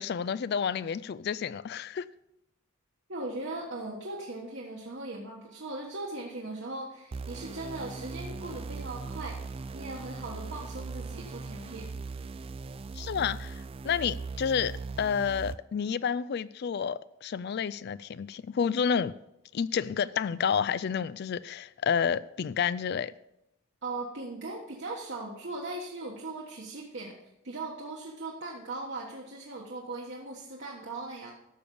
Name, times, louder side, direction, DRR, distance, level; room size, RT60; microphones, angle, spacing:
voice 1, 0.0-2.1 12.9-19.1 19.5-23.1, left 7 dB, 50° left, 0.3 m, -30 dB
voice 2, 3.1-11.9 23.8-27.2 27.4-31.3, right 2 dB, 60° right, 1.3 m, -39 dB
sound 1, 7.1-15.6, right 4 dB, 25° right, 0.3 m, -39 dB
12.0 x 6.9 x 5.4 m
head